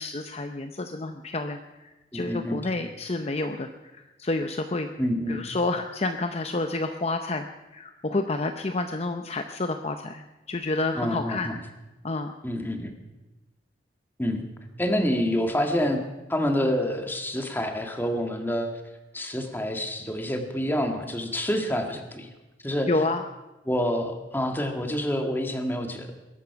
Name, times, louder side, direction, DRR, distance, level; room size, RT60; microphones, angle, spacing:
voice 1, 0.0-4.9 5.3-7.5 7.7-11.5 12.0-12.3 22.9-23.2, left 2 dB, 35° left, 6 dB, 0.7 m, -29 dB
voice 2, 2.1-2.7 5.0-5.4 10.9-11.6 12.4-12.9 14.2-14.5 14.8-16.0 16.3-18.7 19.1-22.3 22.6-22.9 23.6-26.1, equal, 10° left, 4 dB, 1.7 m, -27 dB
21.5 x 11.5 x 5.9 m, 1.1 s
head